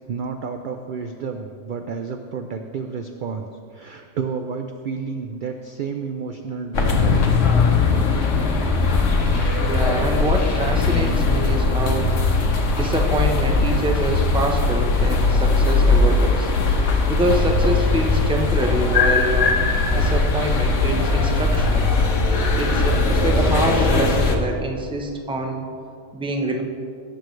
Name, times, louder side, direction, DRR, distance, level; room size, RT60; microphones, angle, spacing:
voice 1, 0.1-7.4, right 5 dB, 65° right, 6 dB, 0.5 m, -31 dB
sound 1, 6.7-24.4, left 3 dB, 70° left, 1.3 m, -19 dB
sound 2, 9.3-11.4 12.0-13.7, left 1 dB, 30° left, 1.7 m, -41 dB
voice 2, 9.6-12.1 12.7-16.5 17.1-19.6 19.9-21.9 22.5-25.7 26.1-26.6, right 1 dB, 5° right, 2 dB, 0.5 m, -25 dB
17.0 x 6.7 x 3.2 m, 2.3 s
omnidirectional pair, 1.4 m